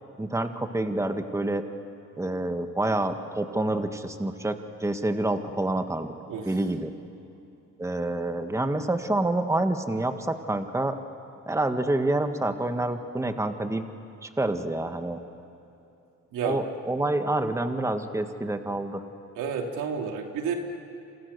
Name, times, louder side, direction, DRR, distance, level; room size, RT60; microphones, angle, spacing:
voice 1, 0.2-1.6 2.2-6.1 6.5-6.9 7.8-11.0 11.5-13.9 14.2-15.2 16.4-19.0, right 2 dB, 10° right, 7 dB, 1.7 m, -27 dB
voice 2, 19.4-20.6, right 6 dB, 90° right, 3 dB, 2.9 m, -30 dB
28.5 x 28.0 x 6.9 m, 2.8 s
cardioid pair, 90°, 30 cm